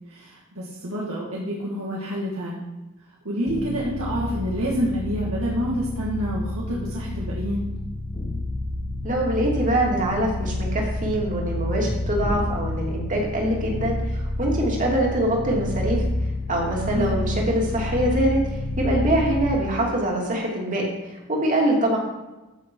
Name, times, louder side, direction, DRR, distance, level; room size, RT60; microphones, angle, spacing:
voice 1, 0.1-2.7 3.2-7.6 16.9-17.3, equal, 70° right, -5 dB, 2.3 m, -28 dB
sound 1, 3.5-19.6, left 1 dB, 45° left, 2.7 m, -29 dB
voice 2, 9.0-16.0 16.5-22.0, right 1 dB, 35° right, -1 dB, 2.7 m, -24 dB
14.5 x 6.4 x 4.7 m, 1.1 s
head